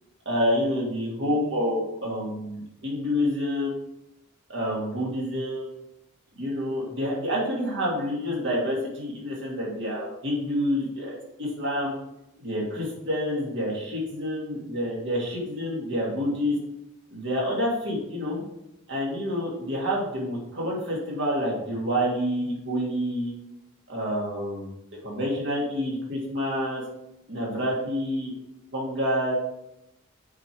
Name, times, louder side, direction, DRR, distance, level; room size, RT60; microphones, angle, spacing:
voice 1, 0.3-3.8 4.5-5.6 6.3-11.9 12.4-16.5 17.1-18.4 18.9-23.3 23.9-24.7 25.0-26.8 27.3-28.3 28.7-29.3, equal, 60° right, -3 dB, 2.5 m, -28 dB
7.5 x 5.2 x 4.7 m, 0.87 s
head